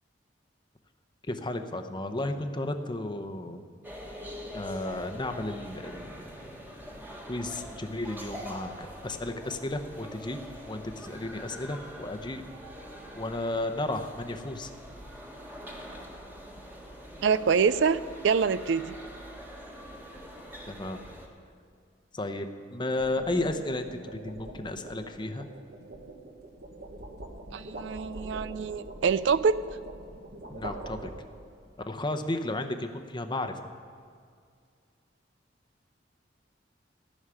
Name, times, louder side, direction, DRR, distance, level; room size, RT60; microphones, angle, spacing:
voice 1, 1.3-3.6 4.5-6.2 7.2-10.4 10.7-12.4 13.2-14.7 20.7-21.0 22.1-25.5 30.5-31.1 31.9-33.5, left 2 dB, 25° left, 7 dB, 0.8 m, -33 dB
sound 1, 3.8-21.3, equal, 10° right, 1.6 m, -44 dB
voice 2, 17.2-18.0 18.2-18.9 27.5-29.6, right 6 dB, 80° right, 16 dB, 0.4 m, -25 dB
sound 2, 22.7-31.6, right 1 dB, 60° right, 1.4 m, -44 dB
14.5 x 6.4 x 9.8 m, 2.2 s
head